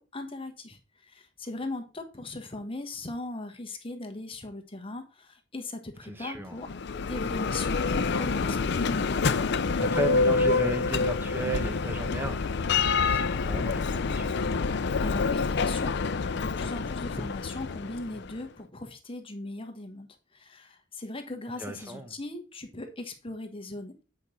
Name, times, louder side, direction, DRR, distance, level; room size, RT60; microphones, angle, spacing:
voice 1, 0.0-6.7 7.1-9.3 15.0-24.0, left 2 dB, 25° left, 1.2 m, -39 dB
voice 2, 6.0-6.6 9.8-12.5 12.8-14.4 21.6-22.1, right 2 dB, 10° right, 1.1 m, -34 dB
Bell, 6.6-18.4, left 4 dB, 60° left, 0.5 m, -27 dB
8.3 x 5.1 x 4.3 m
head